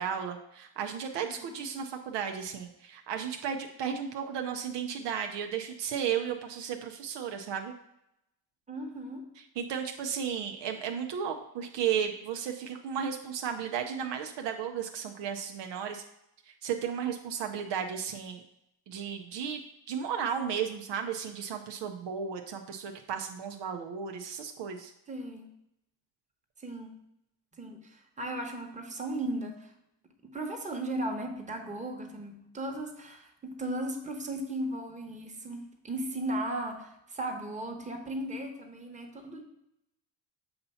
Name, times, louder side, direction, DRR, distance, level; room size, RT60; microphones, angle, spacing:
voice 1, 0.0-7.7 9.4-16.0 16.5-18.4 18.9-19.6 19.9-24.9, right 8 dB, 65° right, 4 dB, 0.7 m, -34 dB
voice 2, 8.7-9.2 25.1-25.5 26.6-26.9 27.6-29.7 30.2-39.4, right 1 dB, 15° right, 2 dB, 1.1 m, -36 dB
6.7 x 2.8 x 5.5 m, 0.82 s
cardioid pair, 85°, 46 cm